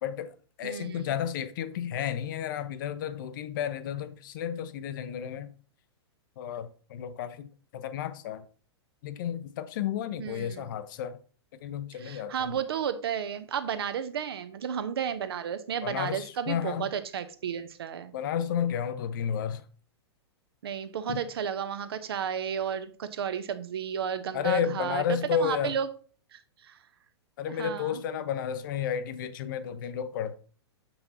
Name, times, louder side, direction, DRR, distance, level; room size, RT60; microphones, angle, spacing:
voice 1, 0.0-5.5 6.4-8.5 9.0-11.2 11.6-12.6 15.8-16.9 18.1-19.6 21.1-21.2 24.3-25.8 27.4-30.4, left 8 dB, 50° left, 0.6 m, -32 dB
voice 2, 0.6-1.1 10.2-10.6 12.0-18.1 20.6-25.9 26.3-26.8 27.5-28.0, right 8 dB, 60° right, 0.7 m, -33 dB
6.7 x 5.5 x 2.7 m
figure-of-eight pair, 105°, 14 cm